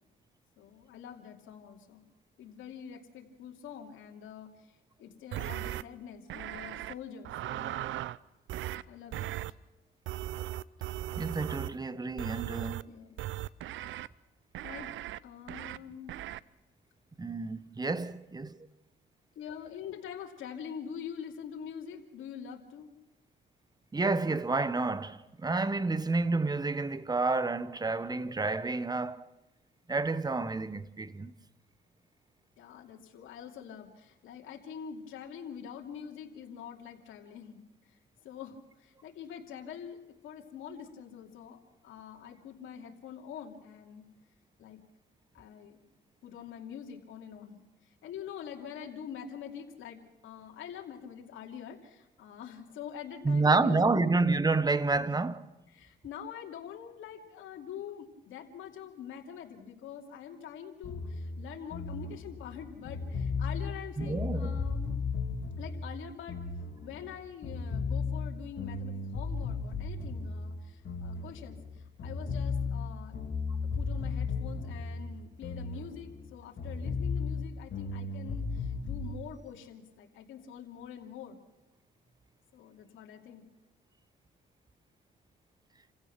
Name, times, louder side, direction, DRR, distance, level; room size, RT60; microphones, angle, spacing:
voice 1, 0.6-2.0 2.4-7.9 8.9-9.3 12.8-13.2 14.6-15.0 15.2-16.2 19.3-22.9 32.6-37.6 38.2-40.0 40.2-44.0 44.6-44.8 45.3-45.8 46.2-47.6 48.0-54.1 55.0-55.2 55.7-65.0 65.6-66.4 66.8-73.1 73.8-81.4 82.5-83.4, left 8 dB, 80° left, 2.7 m, -45 dB
sound 1, 5.3-5.8 6.3-6.9 7.3-8.2 8.5-8.8 9.1-9.5 10.1-11.8 12.2-12.8 13.2-14.1 14.6-15.2 15.5-15.8 16.1-16.4, right 14 dB, 75° right, 0.6 m, -37 dB
voice 2, 11.2-12.8 17.2-18.6 23.9-29.2 29.9-31.3 53.2-55.4 64.0-64.6, right 3 dB, 20° right, 1.1 m, -29 dB
sound 2, 60.8-67.1 67.4-71.7 72.0-76.3 76.6-79.1, left 4 dB, 60° left, 3.4 m, -35 dB
28.5 x 16.0 x 6.0 m
cardioid pair, 90°, 20 cm